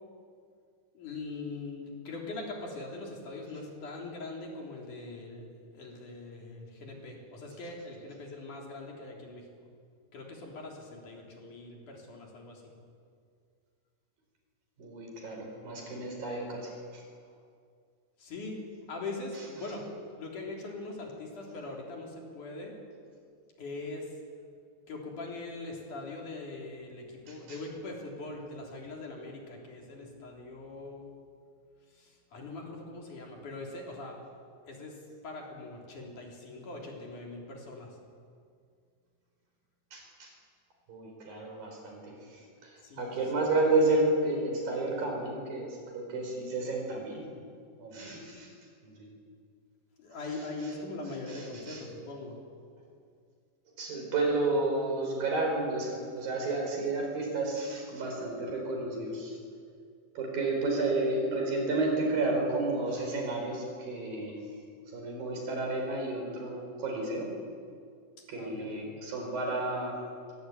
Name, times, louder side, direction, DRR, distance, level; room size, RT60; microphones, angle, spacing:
voice 1, 0.9-5.5 5.7-9.5 10.1-12.7 18.2-18.6 18.9-19.9 20.2-22.8 23.6-24.2 24.9-31.1 31.9-34.2 34.7-38.0 42.8-43.2 50.0-52.4 68.3-68.9, left 2 dB, 55° left, 0 dB, 4.8 m, -41 dB
voice 2, 14.8-17.0 39.9-40.3 40.9-47.2 47.8-48.5 48.8-49.1 51.3-51.8 53.8-59.4 60.2-64.3 64.9-67.3 68.3-69.9, right 2 dB, 65° right, 1 dB, 6.4 m, -31 dB
22.5 x 19.0 x 9.3 m, 2.2 s
omnidirectional pair, 4.4 m